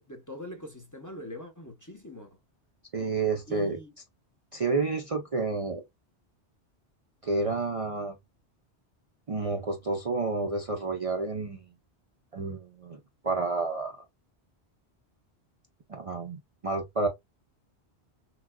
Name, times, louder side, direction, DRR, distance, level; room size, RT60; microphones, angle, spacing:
voice 1, 0.0-2.4 3.5-3.9, equal, 20° left, 0.8 m, -43 dB
voice 2, 2.9-3.8 4.5-5.8 7.2-8.2 9.3-11.7 12.3-14.0 15.9-17.1, right 3 dB, 40° right, 0.6 m, -30 dB
6.0 x 2.2 x 2.2 m
omnidirectional pair, 1.1 m